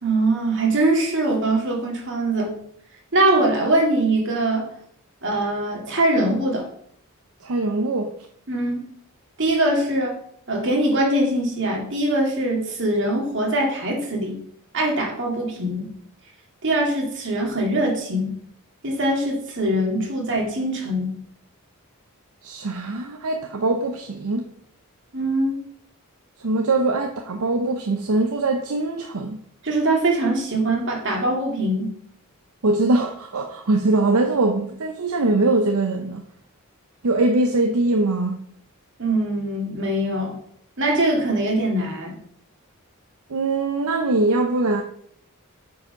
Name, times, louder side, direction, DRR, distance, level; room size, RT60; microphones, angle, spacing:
voice 1, 0.0-2.5 3.1-4.7 5.2-6.7 8.5-8.8 9.4-10.2 10.5-14.4 14.7-15.9 16.6-18.4 18.8-21.2 25.1-25.6 29.6-32.0 39.0-40.4 40.8-42.2, right 1 dB, 55° right, 2.2 m, -22 dB
voice 2, 7.4-8.1 22.4-24.4 26.4-29.4 32.6-36.2 37.0-38.4 43.3-44.8, right 2 dB, 80° right, 0.7 m, -22 dB
8.3 x 4.9 x 5.3 m
head